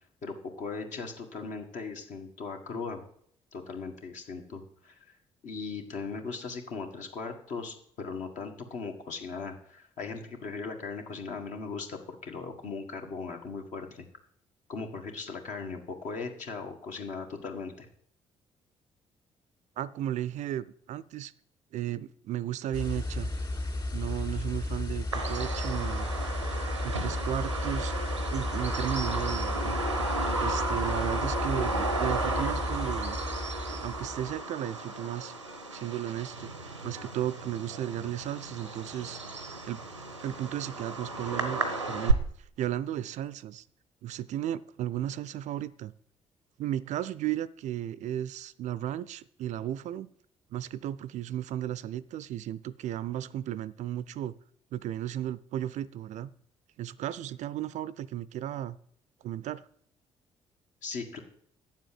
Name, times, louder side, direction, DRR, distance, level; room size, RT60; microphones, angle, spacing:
voice 1, 0.2-3.0 3.5-5.0 5.4-14.0 14.7-17.9 60.8-61.2, left 4 dB, 55° left, 3 dB, 1.8 m, -38 dB
voice 2, 19.8-21.3 21.7-23.3 23.9-26.1 26.8-27.9 28.3-29.8 30.1-33.2 33.7-35.3 35.7-36.5 36.8-39.2 39.6-39.8 40.2-42.2 42.6-43.6 44.0-45.9 46.6-50.1 50.5-54.3 54.7-56.3 56.8-58.8 59.2-59.6, right 12 dB, 50° right, 19 dB, 0.5 m, -34 dB
sound 1, 22.7-34.4, left 2 dB, 25° left, 2.4 m, -34 dB
Bird vocalization bird call bird song, 25.1-42.1, right 3 dB, 90° right, 0.7 m, -33 dB
9.0 x 7.4 x 7.6 m, 0.64 s
figure-of-eight pair, 40°, 15 cm